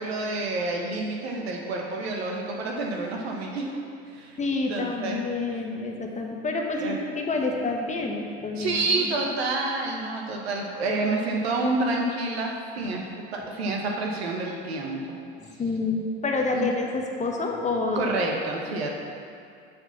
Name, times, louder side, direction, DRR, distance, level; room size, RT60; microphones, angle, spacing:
voice 1, 0.0-3.7 4.1-4.4 4.7-5.2 6.8-7.0 8.6-15.2 16.5-16.7 18.0-19.0, right 2 dB, 80° right, 0 dB, 1.2 m, -28 dB
voice 2, 4.4-9.1 12.8-12.9 15.4-18.0, left 3 dB, 25° left, 1 dB, 1.0 m, -28 dB
6.8 x 4.6 x 5.9 m, 2.4 s
hypercardioid pair, 80°, 31 cm